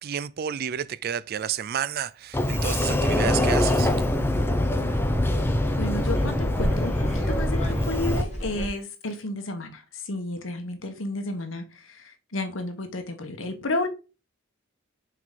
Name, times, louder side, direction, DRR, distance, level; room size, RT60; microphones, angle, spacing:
voice 1, 0.0-3.9, right 8 dB, 50° right, 0.4 m, -30 dB
Sliding door, 2.3-8.2, left 1 dB, 10° left, 0.7 m, -24 dB
sound 1, 3.7-8.7, equal, 35° left, 2.5 m, -34 dB
voice 2, 5.7-13.9, left 2 dB, 80° left, 1.1 m, -32 dB
6.0 x 4.6 x 3.6 m
head